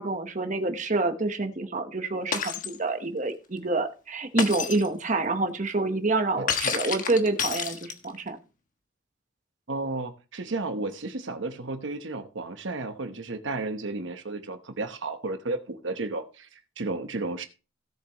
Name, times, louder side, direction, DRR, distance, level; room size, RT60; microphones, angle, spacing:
voice 1, 0.0-8.4, right 2 dB, 40° right, 6 dB, 1.1 m, -27 dB
Shatter, 2.3-2.8 4.4-4.9 6.5-8.2, left 6 dB, 40° left, 1.4 m, -29 dB
voice 2, 9.7-17.4, right 3 dB, 70° right, 8 dB, 1.0 m, -33 dB
17.0 x 7.1 x 3.0 m, 0.32 s
head